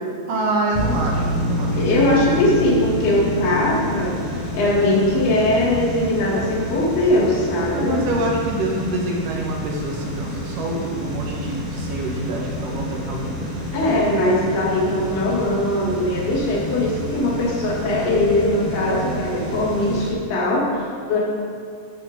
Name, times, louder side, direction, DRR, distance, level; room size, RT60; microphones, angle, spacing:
voice 1, 0.3-2.1 7.7-13.5, right 2 dB, 65° right, -1 dB, 2.6 m, -26 dB
sound 1, 0.7-20.1, equal, 5° right, 2.5 m, -30 dB
sound 2, 0.8-12.1, left 1 dB, 55° left, 1.6 m, -30 dB
voice 2, 1.7-4.1 4.5-8.0 13.7-21.2, left 1 dB, 80° left, -4 dB, 4.3 m, -20 dB
13.5 x 11.5 x 3.7 m, 2.3 s
omnidirectional pair, 4.5 m